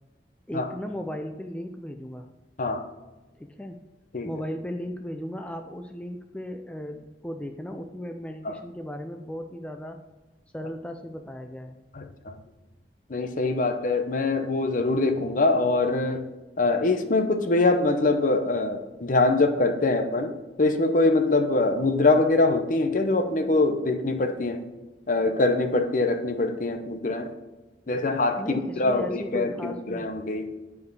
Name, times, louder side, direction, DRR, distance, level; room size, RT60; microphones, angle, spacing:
voice 1, 0.5-2.3 3.4-3.8 4.2-10.0 10.5-11.8 28.3-30.1, equal, 5° left, 5 dB, 0.4 m, -36 dB
voice 2, 11.9-12.4 13.1-16.3 16.6-24.6 25.1-27.3 27.9-30.5, left 2 dB, 50° left, 7 dB, 0.7 m, -24 dB
9.6 x 4.8 x 4.8 m, 1.2 s
head